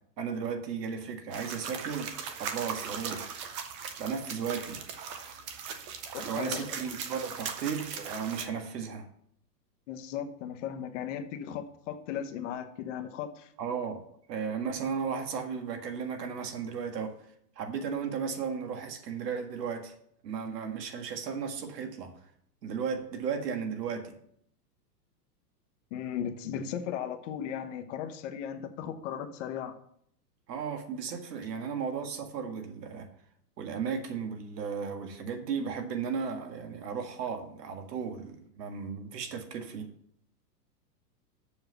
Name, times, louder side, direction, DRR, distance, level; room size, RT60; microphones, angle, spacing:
voice 1, 0.2-2.1 2.4-3.4 4.0-4.8 6.2-9.1 13.6-17.2 17.6-19.9 20.2-22.1 22.6-24.2 30.5-33.1 33.6-39.9, right 6 dB, 75° right, 1.9 m, -35 dB
sound 1, 1.3-8.5, right 6 dB, 20° right, 0.4 m, -39 dB
voice 2, 6.1-6.6 9.9-13.5 25.9-29.8, left 9 dB, 45° left, 1.1 m, -36 dB
7.1 x 5.7 x 6.6 m
hypercardioid pair, 145°, 49 cm